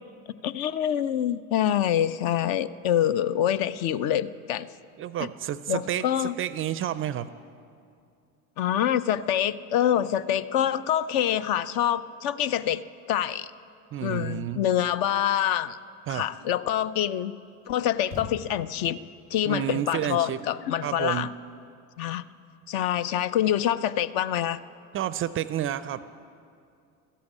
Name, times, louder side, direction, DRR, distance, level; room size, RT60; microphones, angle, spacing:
voice 1, 0.4-4.7 5.7-6.3 8.6-12.8 13.1-13.5 14.0-15.8 16.1-17.3 17.7-19.0 19.3-21.3 22.0-22.2 22.7-24.6, left 10 dB, 55° left, 15 dB, 0.6 m, -26 dB
voice 2, 5.0-7.3 13.9-14.6 16.1-16.2 19.5-20.4 20.8-21.3 24.9-26.0, right 11 dB, 30° right, 15 dB, 0.4 m, -30 dB
sound 1, 18.0-19.1, left 3 dB, 75° left, 2.1 m, -41 dB
13.5 x 8.5 x 8.3 m, 2.4 s
hypercardioid pair, 70°, 43 cm